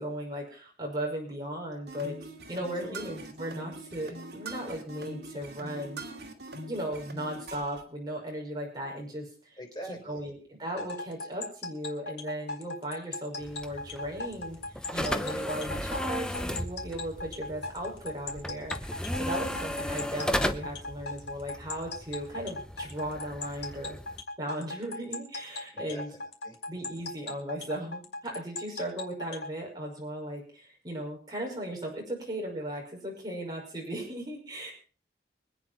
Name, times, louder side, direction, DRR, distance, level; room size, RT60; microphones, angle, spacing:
voice 1, 0.0-2.2 2.5-6.0 6.7-9.6 9.9-24.0 24.4-26.1 26.7-34.7, right 1 dB, 25° right, -1 dB, 5.8 m, -37 dB
sound 1, 1.9-7.8, right 2 dB, 70° right, 2.6 m, -42 dB
voice 2, 2.8-3.1 9.6-10.2 15.2-15.4 25.7-26.6, equal, 25° left, 1 dB, 4.6 m, -44 dB
sound 2, 10.8-29.5, left 3 dB, 85° left, 4.1 m, -38 dB
sound 3, 13.4-24.2, equal, 5° left, 0.8 m, -35 dB
24.5 x 9.4 x 4.4 m, 0.37 s
head